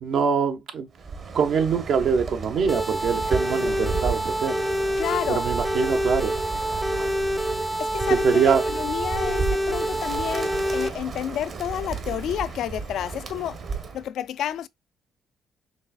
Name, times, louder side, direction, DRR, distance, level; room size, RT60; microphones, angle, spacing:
voice 1, 0.0-0.9 1.3-4.6 5.3-6.3 8.1-8.6, right 6 dB, 70° right, 1.0 m, -23 dB
Bird, 1.0-14.1, right 5 dB, 50° right, 1.2 m, -34 dB
sound 1, 2.7-10.9, equal, 5° right, 0.6 m, -27 dB
voice 2, 5.0-5.5 7.8-13.6 13.9-14.7, left 10 dB, 75° left, 0.4 m, -30 dB
5.4 x 3.3 x 2.3 m
cardioid pair, 90°, 0 cm